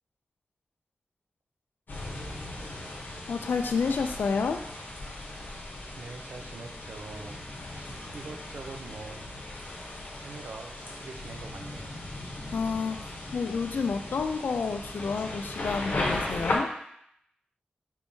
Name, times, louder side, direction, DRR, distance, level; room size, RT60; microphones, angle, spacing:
sound 1, 1.9-16.6, left 2 dB, 70° left, 0.8 m, -37 dB
voice 1, 3.3-4.6 12.5-13.0 13.3-16.7, left 5 dB, 85° left, 6 dB, 0.3 m, -29 dB
voice 2, 6.0-9.3 10.2-12.0, right 3 dB, 75° right, 4 dB, 0.5 m, -44 dB
4.4 x 3.5 x 2.7 m, 0.74 s
wide cardioid pair, 70°, 3 cm